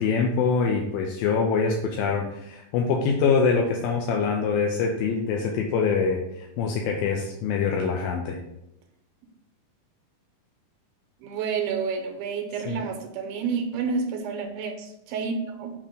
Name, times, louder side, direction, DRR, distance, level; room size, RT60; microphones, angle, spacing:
voice 1, 0.0-8.4 12.7-12.8, left 5 dB, 80° left, 1 dB, 2.2 m, -24 dB
voice 2, 11.2-15.7, right 5 dB, 85° right, 4 dB, 2.6 m, -29 dB
7.4 x 2.9 x 5.0 m, 0.84 s
omnidirectional pair, 4.4 m